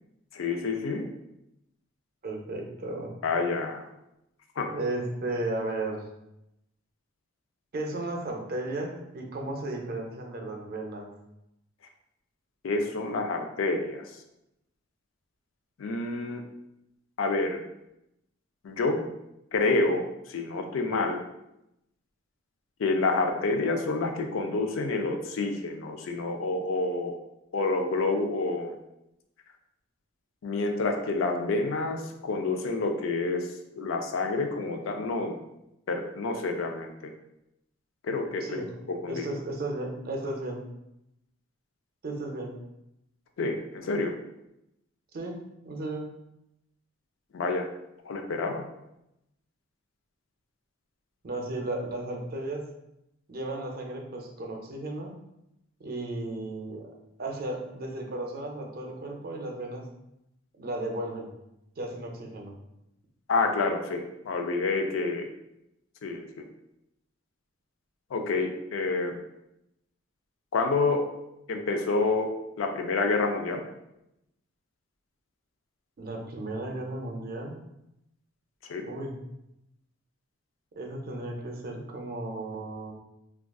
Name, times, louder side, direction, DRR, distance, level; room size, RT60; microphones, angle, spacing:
voice 1, 0.3-1.1 3.2-3.9 4.6-4.7 12.6-14.1 15.8-16.4 17.2-17.6 18.6-19.0 19.5-21.2 22.8-27.2 27.5-28.7 30.4-33.5 33.8-35.4 35.9-37.1 38.0-39.3 43.4-44.1 47.3-47.7 48.1-48.6 63.3-65.3 66.0-66.2 68.1-69.2 70.5-71.0 71.5-72.3 72.6-73.6 78.6-78.8, left 3 dB, 80° left, 4 dB, 0.4 m, -28 dB
voice 2, 2.2-3.1 4.7-6.0 7.7-11.1 38.4-38.7 39.1-40.6 42.0-42.5 45.1-45.4 45.6-46.0 51.2-52.7 53.3-55.1 55.8-56.9 57.2-59.8 60.6-61.3 61.8-62.5 76.0-77.6 78.9-79.1 80.8-82.9, right 2 dB, 50° right, 1 dB, 0.5 m, -34 dB
3.5 x 2.3 x 2.3 m, 0.86 s
head